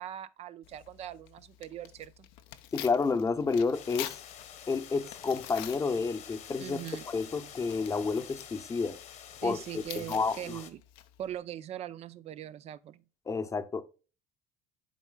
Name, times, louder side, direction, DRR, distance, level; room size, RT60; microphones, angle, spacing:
voice 1, 0.0-2.3 6.6-7.1 9.4-10.8 11.2-13.0, right 11 dB, 45° right, 0.5 m, -41 dB
Tearing, 0.6-11.4, left 13 dB, 75° left, 0.7 m, -48 dB
voice 2, 2.7-4.1 4.7-6.8 7.1-9.0 9.4-10.6 13.3-13.8, left 4 dB, 20° left, 0.8 m, -30 dB
sound 1, 3.7-10.7, left 9 dB, 55° left, 1.2 m, -48 dB
11.0 x 4.4 x 2.3 m
supercardioid pair, 100°, 15 cm